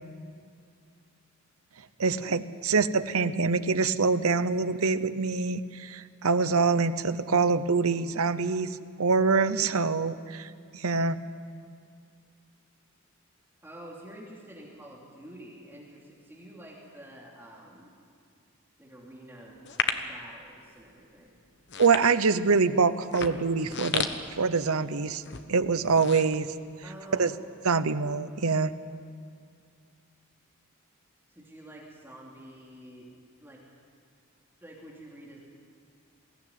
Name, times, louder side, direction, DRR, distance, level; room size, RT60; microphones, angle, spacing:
voice 1, 2.0-11.2 21.8-24.1 24.4-25.2 25.5-26.5 27.2-27.3 27.6-28.7, right 4 dB, 80° right, 13 dB, 0.8 m, -25 dB
voice 2, 13.6-17.9 18.8-19.6 19.9-21.4 26.8-27.3 31.3-33.6 34.6-35.4, right 1 dB, 10° right, -4 dB, 2.9 m, -48 dB
sound 1, 19.6-20.2 20.8-21.0 21.6-22.5 23.0-24.9 25.2-25.5 25.8-27.0 27.4-27.5, left 7 dB, 50° left, 1.1 m, -32 dB
21.5 x 16.0 x 9.4 m, 2.3 s
head